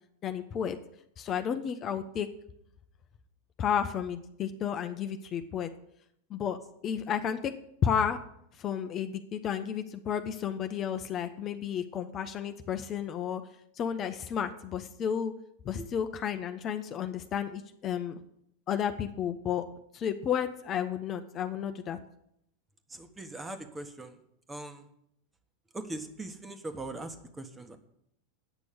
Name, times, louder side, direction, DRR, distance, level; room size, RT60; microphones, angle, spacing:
voice 1, 0.2-0.8 1.2-2.3 3.6-5.7 6.3-6.6 6.8-7.5 7.8-8.2 8.6-13.4 13.8-15.3 15.6-18.2 18.7-19.6 19.9-22.0, left 8 dB, 40° left, 8 dB, 0.9 m, -32 dB
voice 2, 22.9-24.1 24.5-24.8 25.7-27.8, right 2 dB, 15° right, 7 dB, 1.5 m, -40 dB
9.1 x 6.2 x 8.5 m, 0.75 s
hypercardioid pair, 95°, 0 cm